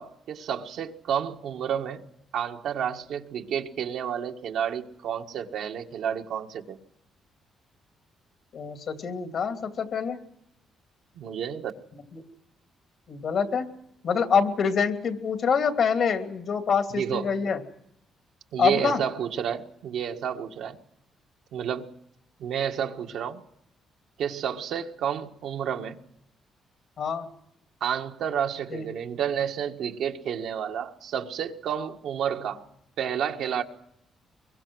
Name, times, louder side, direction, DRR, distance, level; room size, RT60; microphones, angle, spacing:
voice 1, 0.0-2.0 2.3-6.8 11.1-11.7 16.9-17.3 18.5-20.8 21.5-21.9 22.4-23.4 24.2-26.0 27.8-32.6 33.0-33.6, right 8 dB, 75° right, 3 dB, 1.6 m, -30 dB
voice 2, 8.5-10.2 13.1-13.7 14.0-17.6 18.6-19.0 27.0-27.3 28.7-28.9, left 6 dB, 60° left, 6 dB, 2.8 m, -25 dB
23.5 x 22.5 x 6.3 m, 0.76 s
cardioid pair, 90°, 0 cm